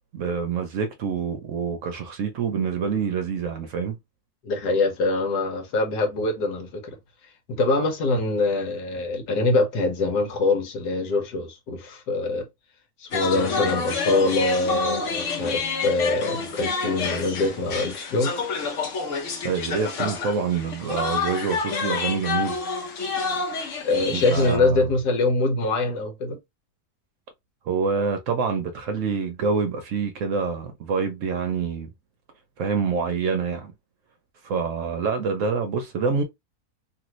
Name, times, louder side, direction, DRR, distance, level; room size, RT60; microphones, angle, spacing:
voice 1, 0.1-4.0 19.4-22.6 24.1-24.9 27.7-31.9 32.6-33.7 34.4-36.2, right 5 dB, 65° right, 0.9 m, -26 dB
voice 2, 4.4-6.8 7.5-12.5 13.0-18.3 23.8-26.4, left 2 dB, 90° left, 1.5 m, -24 dB
sound 1, 13.1-24.6, left 4 dB, 55° left, 1.0 m, -29 dB
3.0 x 2.6 x 3.0 m
omnidirectional pair, 1.7 m